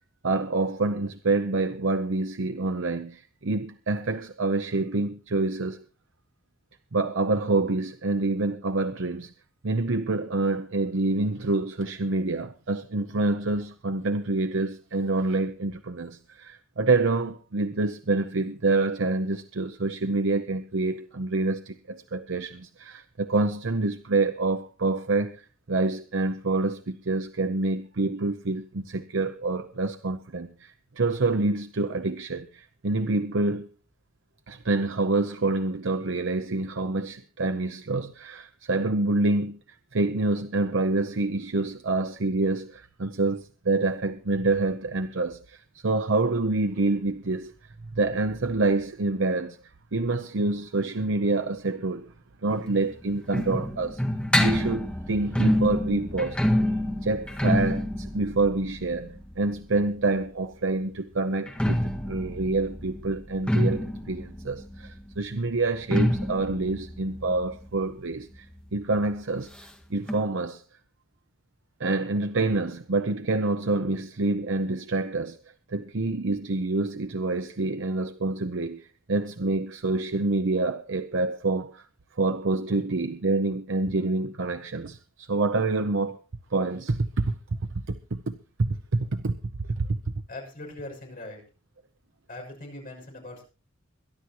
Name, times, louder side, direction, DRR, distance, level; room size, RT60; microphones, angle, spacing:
voice 1, 0.2-5.9 6.9-9.3 9.6-33.7 34.5-39.6 39.9-49.6 49.9-52.1 52.4-54.0 54.4-56.4 57.0-68.5 68.7-69.5 69.9-70.6 71.8-75.4 75.7-81.8 82.2-86.2 86.5-87.3 87.9-89.4 89.8-90.0, right 3 dB, 65° right, 0.8 m, -27 dB
sound 1, 52.5-60.2 61.3-68.7 69.0-69.1 69.3-69.4 70.1-70.2, left 1 dB, 5° left, 1.8 m, -27 dB
voice 2, 90.3-91.4 92.3-93.4, left 2 dB, 45° left, 6.5 m, -40 dB
22.5 x 11.5 x 3.0 m
head